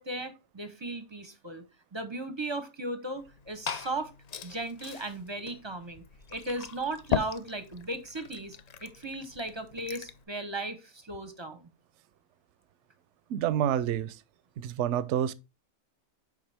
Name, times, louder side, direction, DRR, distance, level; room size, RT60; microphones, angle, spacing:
voice 1, 0.0-1.6 1.9-4.1 4.4-6.0 6.3-11.7, right 2 dB, 25° right, 0.6 m, -36 dB
Liquid, 3.2-10.2, left 8 dB, 85° left, 0.3 m, -39 dB
voice 2, 13.3-14.1 14.6-15.3, right 10 dB, 65° right, 0.8 m, -28 dB
7.2 x 5.0 x 3.4 m
omnidirectional pair, 1.4 m